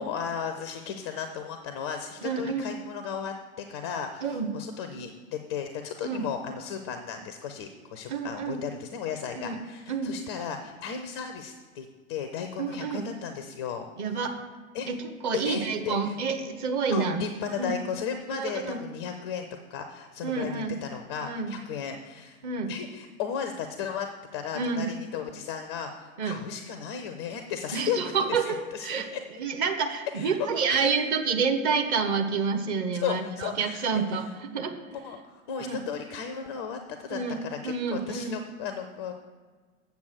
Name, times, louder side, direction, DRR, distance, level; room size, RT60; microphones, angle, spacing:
voice 1, 0.0-13.9 14.7-14.9 15.4-16.2 16.9-22.4 22.7-28.0 28.3-29.2 30.1-30.3 30.7-30.8 33.0-33.9 34.9-39.1, left 7 dB, 20° left, 7 dB, 0.4 m, -35 dB
voice 2, 2.2-2.7 4.2-4.5 6.0-6.3 8.1-8.6 9.4-9.6 9.9-10.1 12.6-13.1 14.0-14.3 14.9-17.8 18.3-18.8 20.2-20.8 21.2-21.5 22.4-22.7 24.5-24.9 26.2-26.4 27.7-29.1 29.4-34.7 35.6-35.8 37.1-38.4, right 5 dB, 35° right, 5 dB, 1.1 m, -29 dB
7.8 x 7.0 x 6.1 m, 1.5 s
figure-of-eight pair, 95°, 43 cm